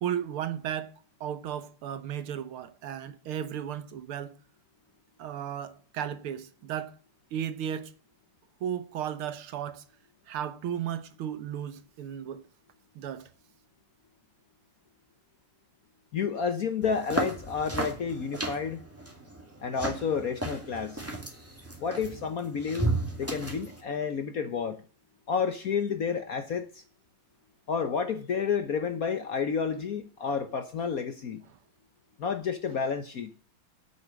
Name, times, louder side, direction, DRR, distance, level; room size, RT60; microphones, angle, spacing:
voice 1, 0.0-0.9 1.2-4.3 5.2-6.9 7.3-7.9 8.6-9.8 10.3-12.4 13.0-13.3 32.7-32.8, right 9 dB, 75° right, 1.9 m, -34 dB
voice 2, 16.1-18.8 19.6-21.0 21.8-24.8 25.3-26.8 27.7-31.4 32.2-33.3, left 6 dB, 55° left, 1.0 m, -30 dB
sound 1, 16.8-23.8, right 2 dB, 5° right, 2.1 m, -34 dB
8.6 x 8.4 x 7.4 m
omnidirectional pair, 2.4 m